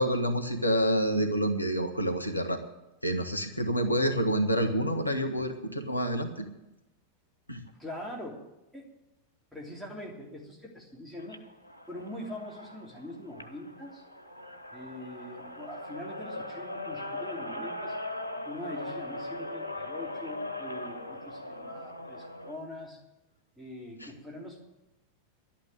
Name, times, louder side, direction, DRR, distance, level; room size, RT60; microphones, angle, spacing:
voice 1, 0.0-2.6 3.0-6.4 7.5-7.6 24.0-24.1, equal, 85° left, 6 dB, 1.1 m, -28 dB
voice 2, 7.8-8.4 8.7-8.9 9.5-11.4 11.9-14.0 14.7-18.0 18.4-23.0 23.6-24.6, left 1 dB, 5° right, -2 dB, 3.2 m, -43 dB
sound 1, 11.2-22.6, left 2 dB, 90° right, 1.1 m, -40 dB
12.0 x 8.9 x 9.0 m, 0.95 s
figure-of-eight pair, 90°, 0 cm